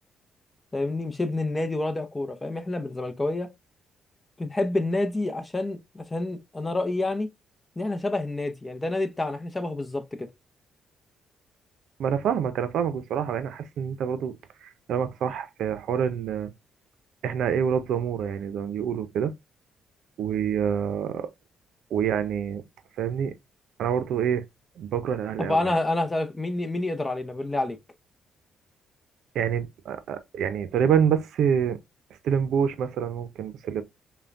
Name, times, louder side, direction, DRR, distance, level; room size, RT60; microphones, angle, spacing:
voice 1, 0.7-3.5 4.4-7.3 7.8-10.3 25.4-27.8, left 2 dB, 20° left, 0.7 m, -28 dB
voice 2, 12.0-16.5 17.2-19.3 20.2-21.3 21.9-22.6 23.0-23.3 23.8-24.4 24.8-25.7 29.3-31.8 32.2-33.8, right 8 dB, 75° right, 0.6 m, -27 dB
5.5 x 2.2 x 2.5 m
cardioid pair, 90°, 0 cm